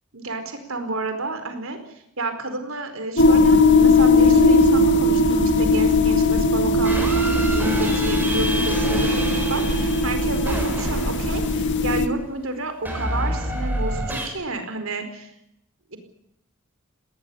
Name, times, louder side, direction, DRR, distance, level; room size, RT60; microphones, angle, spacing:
voice 1, 0.1-15.3 15.9-16.0, right 2 dB, 65° right, 7 dB, 4.7 m, -30 dB
sound 1, 3.2-12.1, left 2 dB, 55° left, 1.7 m, -18 dB
sound 2, 6.8-12.0 12.9-14.3, equal, 10° right, 6.1 m, -29 dB
19.5 x 19.0 x 9.9 m, 0.76 s
head